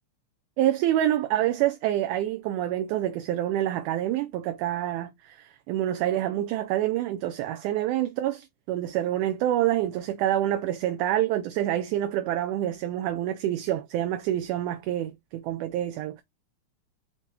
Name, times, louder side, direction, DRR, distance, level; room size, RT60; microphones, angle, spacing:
voice 1, 0.6-16.2, right 12 dB, 80° right, 1.9 m, -27 dB
5.8 x 2.2 x 3.0 m
omnidirectional pair, 3.8 m